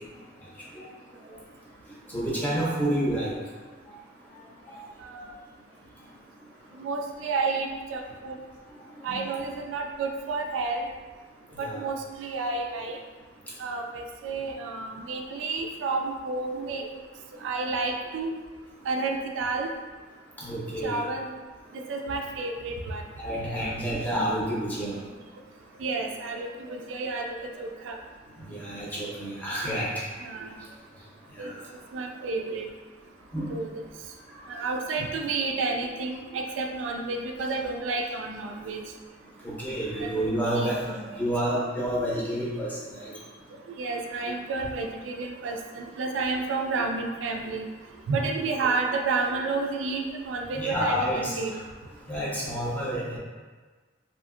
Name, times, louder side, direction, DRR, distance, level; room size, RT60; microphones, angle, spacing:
voice 1, 2.1-3.4 4.7-4.8 9.1-9.2 11.5-11.8 20.4-21.0 23.2-25.0 28.4-30.0 31.4-31.5 33.3-33.5 34.5-34.6 39.4-40.8 41.2-43.1 50.6-51.4 52.1-53.2, equal, 10° left, -7 dB, 0.6 m, -29 dB
voice 2, 6.8-8.3 9.0-10.9 11.6-13.0 13.6-16.9 17.4-18.3 18.9-19.7 20.8-21.3 21.7-23.0 25.8-28.0 30.2-30.5 31.4-31.5 31.9-32.7 33.5-33.7 34.5-38.8 40.0-41.2 43.8-47.7 48.1-51.5, right 3 dB, 85° right, 2 dB, 0.3 m, -30 dB
2.7 x 2.5 x 2.4 m, 1.4 s
head